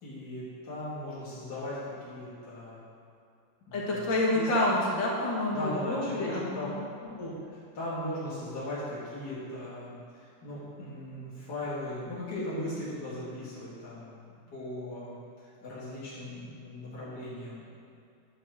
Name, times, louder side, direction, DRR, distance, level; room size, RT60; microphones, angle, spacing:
voice 1, 0.0-1.8 2.1-2.8 3.7-4.1 4.3-4.5 5.5-6.7 7.0-7.3 7.7-10.0 10.4-15.2 15.6-17.6, left 1 dB, 60° left, -9 dB, 2.4 m, -38 dB
voice 2, 3.7-6.8, left 1 dB, 80° left, -4 dB, 2.3 m, -28 dB
9.9 x 4.3 x 6.2 m, 2.5 s
omnidirectional pair, 2.1 m